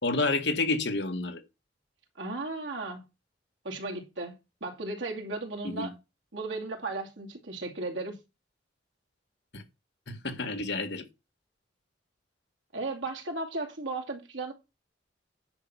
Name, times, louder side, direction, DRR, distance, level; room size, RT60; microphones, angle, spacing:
voice 1, 0.0-1.4 5.6-5.9 9.5-9.6 10.1-11.0, left 3 dB, 65° left, 1.8 m, -29 dB
voice 2, 2.2-3.1 3.6-5.9 6.3-8.2 12.7-14.5, right 2 dB, 90° right, 2.5 m, -35 dB
9.7 x 6.0 x 5.5 m
head